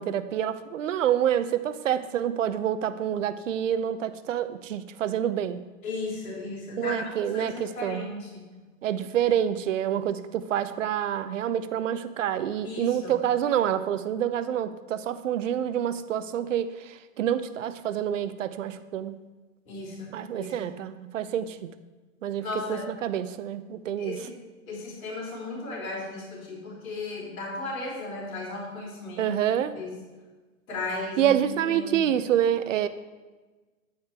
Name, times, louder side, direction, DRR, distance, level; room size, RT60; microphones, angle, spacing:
voice 1, 0.0-5.6 6.8-8.0 8.8-19.2 20.1-21.7 22.2-24.2 29.2-29.7 31.2-32.9, right 10 dB, 65° right, 13 dB, 0.7 m, -27 dB
voice 2, 5.8-8.5 12.6-13.1 19.7-20.5 22.4-22.8 24.0-24.3 24.7-29.4 29.8-30.0 30.7-31.4 31.6-32.0, left 2 dB, 85° left, -3 dB, 3.7 m, -35 dB
10.0 x 9.6 x 3.5 m, 1.3 s
hypercardioid pair, 170°, 41 cm